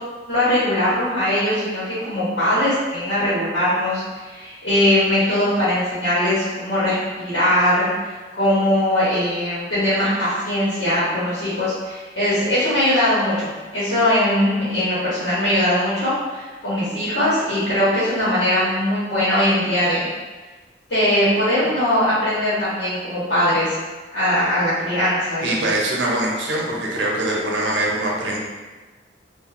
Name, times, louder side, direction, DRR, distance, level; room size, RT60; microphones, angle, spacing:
voice 1, 0.3-20.1 20.9-23.8 24.1-25.6, left 1 dB, 75° left, -10 dB, 0.9 m, -20 dB
voice 2, 25.4-28.4, right 1 dB, 85° right, -3 dB, 0.6 m, -23 dB
2.9 x 2.2 x 2.5 m, 1.3 s
head